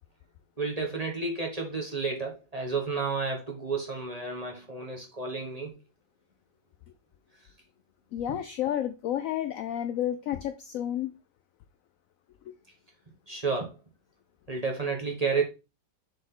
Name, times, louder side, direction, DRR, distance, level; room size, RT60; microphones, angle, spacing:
voice 1, 0.6-5.8 13.3-13.7 14.5-15.4, right 4 dB, 25° right, 1.2 m, -31 dB
voice 2, 8.1-11.2 12.5-12.6, left 11 dB, 75° left, 0.7 m, -31 dB
7.0 x 4.0 x 3.8 m
omnidirectional pair, 1.9 m